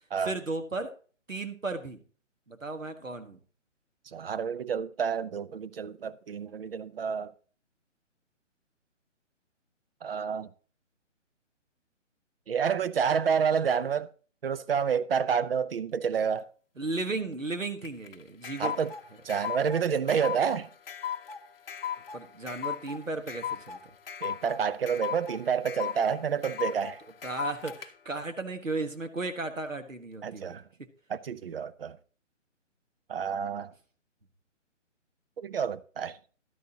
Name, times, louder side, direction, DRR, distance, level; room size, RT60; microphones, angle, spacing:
voice 1, 0.2-0.9 1.3-2.0 2.5-3.4 16.8-18.7 22.1-23.8 27.2-30.5, right 3 dB, 90° right, 1.5 m, -35 dB
voice 2, 4.1-7.3 10.0-10.5 12.5-14.1 14.4-16.5 18.6-18.9 19.2-20.7 24.2-27.0 30.2-30.6 31.1-32.0 33.1-33.7 35.4-36.2, right 7 dB, 50° right, 0.6 m, -29 dB
sound 1, 17.8-27.9, left 8 dB, 50° left, 0.8 m, -37 dB
12.0 x 10.0 x 2.8 m
figure-of-eight pair, 140°, 38 cm